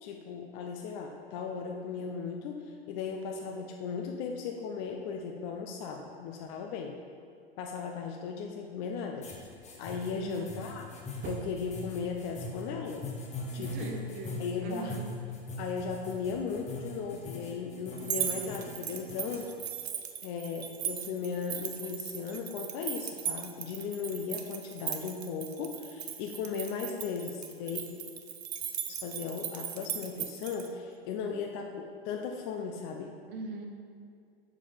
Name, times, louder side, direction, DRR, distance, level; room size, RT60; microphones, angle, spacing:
voice 1, 0.0-6.9 7.6-9.3 9.8-10.8 11.2-13.1 13.5-13.9 14.4-14.9 15.6-19.5 20.2-27.9 28.9-33.1, left 5 dB, 45° left, 2 dB, 0.6 m, -37 dB
sound 1, 9.2-19.5, left 2 dB, 20° left, 1.0 m, -41 dB
voice 2, 10.1-10.6 13.6-15.1 33.3-33.7, right 3 dB, 65° right, 3 dB, 1.1 m, -40 dB
sound 2, 11.2-14.2 15.3-17.2, right 8 dB, 30° right, 0.4 m, -49 dB
sound 3, 18.0-30.7, right 9 dB, 85° right, 0.7 m, -38 dB
5.8 x 4.9 x 5.0 m, 2.3 s
hypercardioid pair, 110°, 31 cm